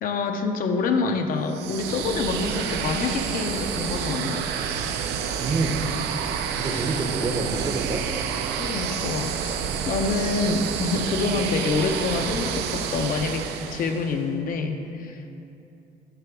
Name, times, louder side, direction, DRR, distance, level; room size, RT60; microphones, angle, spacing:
voice 1, 0.0-4.5 8.6-15.3, left 4 dB, 55° left, 5 dB, 0.5 m, -27 dB
sound 1, 1.5-14.2, right 7 dB, 85° right, 0.4 m, -29 dB
voice 2, 5.4-5.8 6.6-8.1, right 3 dB, 25° right, 4 dB, 0.6 m, -27 dB
6.8 x 5.8 x 3.5 m, 2.7 s
cardioid pair, 110°, 17 cm